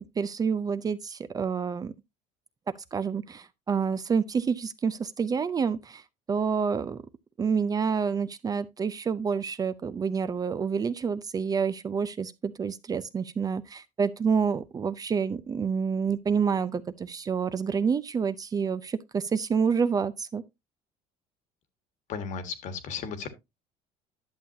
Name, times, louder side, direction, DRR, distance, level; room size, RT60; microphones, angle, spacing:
voice 1, 0.0-1.9 2.9-6.0 6.3-7.0 7.4-20.4, right 6 dB, 25° right, 0.5 m, -28 dB
voice 2, 22.1-23.3, left 6 dB, 60° left, 1.6 m, -35 dB
11.0 x 7.0 x 2.7 m
cardioid pair, 115°, 14 cm